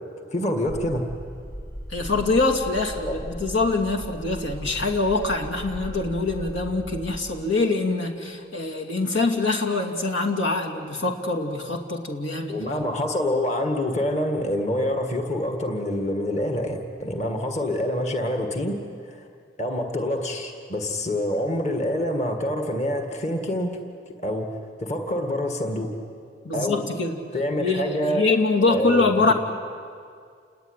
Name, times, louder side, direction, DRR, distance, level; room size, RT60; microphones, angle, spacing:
voice 1, 0.3-1.1 3.0-3.2 12.5-18.8 19.1-19.3 19.6-23.8 24.2-25.9 26.5-26.8 27.3-28.2 28.7-29.3, left 1 dB, 35° left, 3 dB, 2.1 m, -26 dB
sound 1, 0.7-7.2, equal, 60° left, 5.3 m, -37 dB
voice 2, 1.9-12.6 26.4-27.2 27.6-29.3, left 3 dB, 85° left, 2 dB, 2.7 m, -24 dB
29.0 x 19.5 x 9.9 m, 2.2 s
head